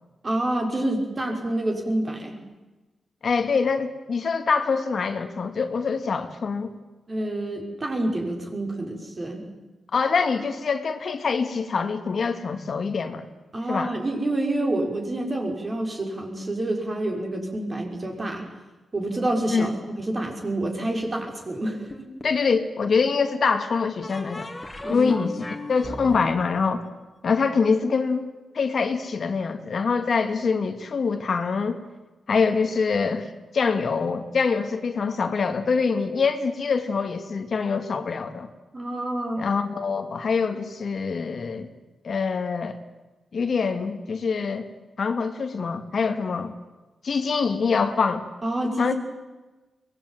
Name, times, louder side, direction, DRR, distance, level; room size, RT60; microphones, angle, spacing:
voice 1, 0.2-2.4 7.1-9.4 13.5-18.5 18.9-21.8 24.8-25.3 38.7-39.4 48.4-48.9, right 1 dB, 35° right, 2 dB, 6.0 m, -28 dB
voice 2, 3.2-6.7 9.9-13.2 13.7-13.9 19.5-19.7 22.2-24.5 24.9-25.3 25.7-26.8 27.2-28.3 28.5-31.8 32.3-38.5 39.4-41.7 42.0-42.8 43.3-44.7 45.0-46.5 47.0-48.3 48.8-48.9, left 5 dB, 60° left, 7 dB, 2.1 m, -24 dB
sound 1, 21.9-22.7 24.0-27.7, left 2 dB, 20° left, 3.1 m, -38 dB
23.0 x 19.5 x 9.2 m, 1.2 s
cardioid pair, 85°, 0 cm